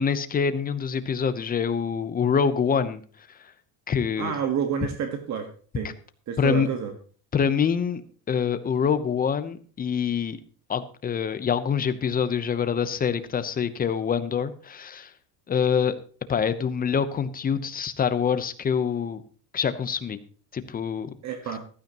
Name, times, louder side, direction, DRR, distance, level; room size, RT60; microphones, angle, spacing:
voice 1, 0.0-3.0 3.9-4.3 6.4-6.7 7.3-8.0 8.3-10.4 10.7-15.1 15.5-16.0 16.3-19.2 19.5-20.2 20.5-21.1, left 7 dB, 20° left, 11 dB, 0.8 m, -25 dB
voice 2, 4.2-5.5 5.7-5.9 6.3-6.9 21.2-21.6, right 7 dB, 40° right, 6 dB, 1.5 m, -29 dB
15.0 x 12.0 x 3.0 m, 0.41 s
cardioid pair, 140°, 43 cm